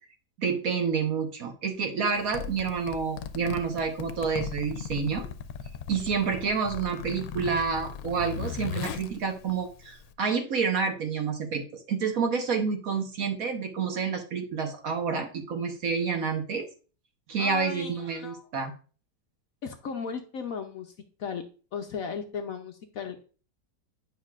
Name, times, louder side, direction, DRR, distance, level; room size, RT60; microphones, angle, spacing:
voice 1, 0.4-5.2 5.9-16.7 17.3-18.7, right 5 dB, 60° right, 5 dB, 1.3 m, -29 dB
Zipper (clothing), 2.1-10.1, left 7 dB, 90° left, 1.3 m, -38 dB
voice 2, 17.4-18.5 19.6-20.9 21.2-21.4 21.7-23.2, left 6 dB, 60° left, 5 dB, 1.0 m, -36 dB
9.2 x 5.7 x 2.4 m, 0.37 s
omnidirectional pair, 1.9 m